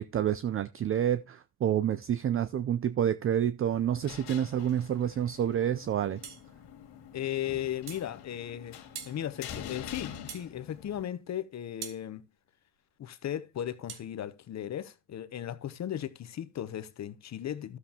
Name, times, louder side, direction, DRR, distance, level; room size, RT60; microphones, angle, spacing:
voice 1, 0.0-6.4, right 10 dB, 35° right, 0.5 m, -28 dB
sound 1, 3.7-11.0, left 9 dB, 75° left, 2.3 m, -46 dB
sound 2, 6.2-6.5 7.9-8.1 8.9-9.2 10.3-10.5 11.8-12.0 13.9-14.1, right 8 dB, 70° right, 1.7 m, -42 dB
voice 2, 7.1-12.2 13.0-17.8, left 11 dB, 45° left, 0.8 m, -36 dB
13.0 x 7.2 x 2.9 m
cardioid pair, 105°, 40 cm